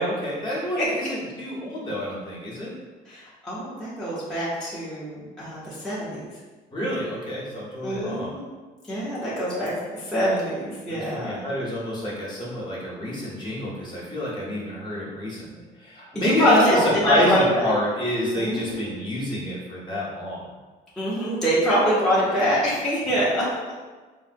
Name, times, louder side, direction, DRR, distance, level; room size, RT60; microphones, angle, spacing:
voice 1, 0.0-2.8 6.7-8.3 10.9-20.4, left 1 dB, 25° left, -6 dB, 1.0 m, -28 dB
voice 2, 3.1-6.2 7.8-8.5 8.9-11.4 16.1-17.7 18.3-18.9 21.0-23.7, equal, 5° left, -9 dB, 0.7 m, -24 dB
3.7 x 2.1 x 2.5 m, 1.3 s
cardioid pair, 110°, 17 cm